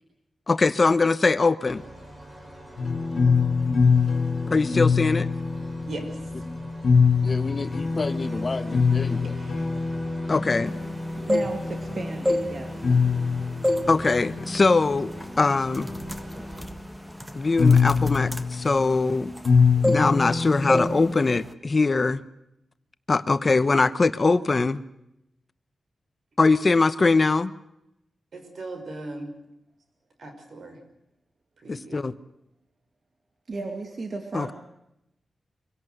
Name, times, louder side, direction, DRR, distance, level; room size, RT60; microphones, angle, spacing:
voice 1, 0.5-1.8 4.5-5.3 7.2-9.4 10.3-10.7 13.9-15.1 15.4-15.9 17.3-19.3 19.8-22.2 23.1-24.8 26.4-27.5 31.7-32.1 34.3-34.5, left 3 dB, 40° left, 13 dB, 0.9 m, -22 dB
sound 1, 1.7-16.7, right 1 dB, 25° right, 5.8 m, -43 dB
sound 2, 2.8-21.2, left 5 dB, 70° left, 2.8 m, -25 dB
sound 3, 11.1-11.8 12.2-13.3 13.6-14.0 14.4-14.6 15.2-15.4 15.7-19.5 19.8-20.4 20.7-21.0 21.3-21.5, left 1 dB, 5° right, 1.5 m, -27 dB
voice 2, 11.2-12.8 33.5-34.5, right 3 dB, 55° right, 4 dB, 2.4 m, -34 dB
voice 3, 28.3-29.3 30.2-30.8 31.6-32.0, right 2 dB, 70° right, 6 dB, 5.5 m, -38 dB
25.0 x 17.0 x 8.0 m, 0.85 s
wide cardioid pair, 95°, 0 cm